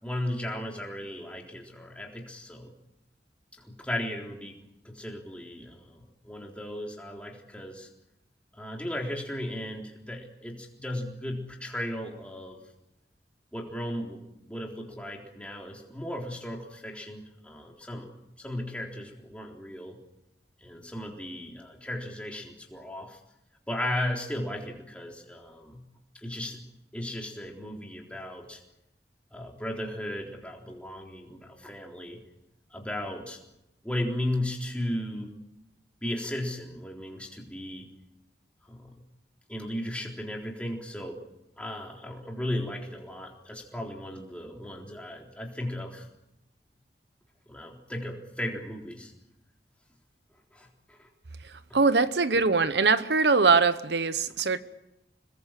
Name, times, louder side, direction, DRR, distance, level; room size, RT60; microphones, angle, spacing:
voice 1, 0.0-2.7 3.6-7.9 8.5-12.6 13.5-18.1 18.4-20.0 20.6-23.2 23.7-25.8 26.2-26.6 26.9-28.6 29.3-32.2 32.7-33.4 33.8-35.3 36.0-37.9 38.7-38.9 39.5-41.2 41.6-46.1 47.5-49.1 50.5-51.0 51.7-51.8, left 1 dB, 5° left, 3.7 m, -36 dB
voice 2, 51.7-54.6, right 4 dB, 75° right, 1.0 m, -22 dB
27.0 x 20.5 x 7.5 m
head